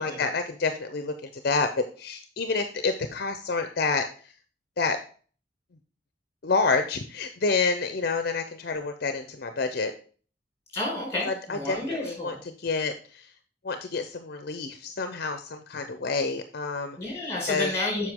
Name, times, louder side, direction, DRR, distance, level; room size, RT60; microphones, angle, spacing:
voice 1, 0.0-4.1 4.8-5.0 6.4-9.9 11.3-13.3 13.6-17.0 17.5-17.7, left 4 dB, 55° left, 8 dB, 0.6 m, -28 dB
voice 2, 10.7-12.4 17.0-18.1, left 2 dB, 15° left, -2 dB, 4.4 m, -30 dB
7.8 x 5.6 x 3.6 m, 0.41 s
head